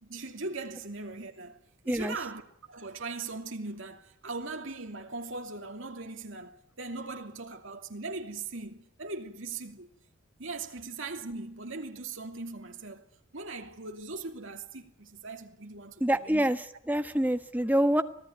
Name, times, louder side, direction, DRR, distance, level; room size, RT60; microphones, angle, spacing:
voice 1, 0.0-1.6 1.8-2.4 2.7-9.9 10.4-13.1 13.3-16.5, right 3 dB, 65° right, 2.8 m, -39 dB
voice 2, 1.9-2.2 16.0-18.0, right 1 dB, 10° right, 1.3 m, -26 dB
26.0 x 17.0 x 9.6 m
head